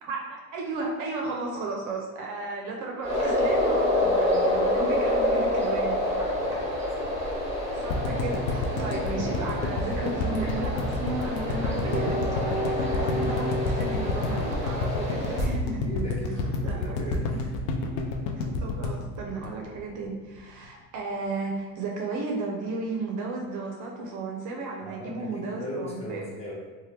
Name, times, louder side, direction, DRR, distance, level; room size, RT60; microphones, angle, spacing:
voice 1, 0.0-6.0 7.8-15.9 16.6-17.0 18.0-18.1 18.3-26.3, right 3 dB, 45° right, 0 dB, 0.5 m, -34 dB
sound 1, 3.0-15.4, left 1 dB, 15° right, 1.3 m, -27 dB
sound 2, 7.9-20.1 20.4-20.5 20.6-20.7, left 3 dB, 60° left, 0.5 m, -29 dB
voice 2, 15.8-17.5 24.8-26.5, equal, 15° left, -4 dB, 0.8 m, -37 dB
2.7 x 2.2 x 3.3 m, 1.3 s
supercardioid pair, 95°, 41 cm